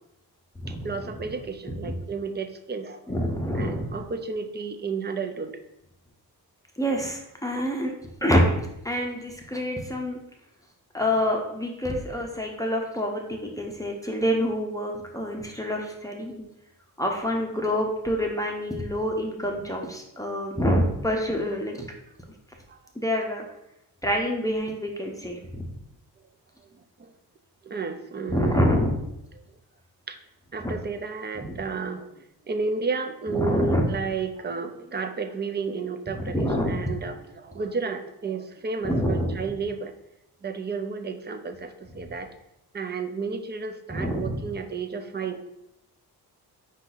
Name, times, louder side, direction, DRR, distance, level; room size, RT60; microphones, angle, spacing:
voice 1, 0.7-3.2 3.5-5.6 22.7-22.8 27.0-27.1 27.6-28.7 30.1-30.2 30.5-39.9 40.4-42.3 42.7-45.4, right 4 dB, 25° right, 8 dB, 0.5 m, -32 dB
voice 2, 3.1-4.0 6.8-7.9 8.2-10.2 10.9-16.4 17.0-21.9 23.0-23.4 24.0-25.7 28.3-29.0 30.6-30.7 31.4-31.6 33.3-33.9 36.2-36.8 38.8-39.4 43.9-44.4, equal, 10° left, 0 dB, 0.7 m, -26 dB
5.0 x 2.7 x 3.9 m, 0.84 s
cardioid pair, 90°, 38 cm